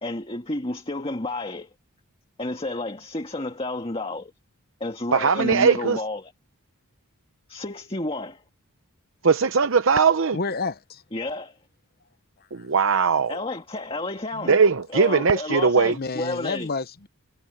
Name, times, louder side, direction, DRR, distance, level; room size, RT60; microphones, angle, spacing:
voice 1, 0.0-1.7 2.4-4.3 4.8-6.3 7.5-8.4 11.1-11.6 13.3-14.6 14.9-16.7, left 2 dB, 25° left, 1.9 m, -31 dB
voice 2, 5.1-6.0 9.2-10.4 12.5-13.3 14.4-16.0, right 5 dB, 60° right, 0.8 m, -20 dB
voice 3, 10.3-11.0 12.6-12.7 15.9-17.1, left 4 dB, 45° left, 0.9 m, -30 dB
head